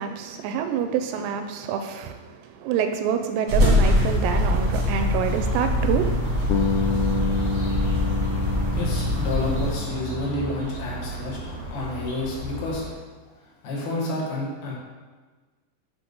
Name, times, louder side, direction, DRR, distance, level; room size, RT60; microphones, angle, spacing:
voice 1, 0.0-2.2 2.6-6.4, right 7 dB, 85° right, 7 dB, 2.5 m, -27 dB
sound 1, 3.5-9.7, left 1 dB, 65° right, 1.6 m, -23 dB
sound 2, 4.2-12.9, equal, 40° left, 2.3 m, -35 dB
Bass guitar, 6.5-10.6, left 5 dB, 85° left, 2.1 m, -29 dB
voice 2, 8.7-11.4 11.7-12.8 13.6-14.7, left 2 dB, 65° left, -3 dB, 2.9 m, -29 dB
7.8 x 3.4 x 5.2 m, 1.3 s
omnidirectional pair, 4.9 m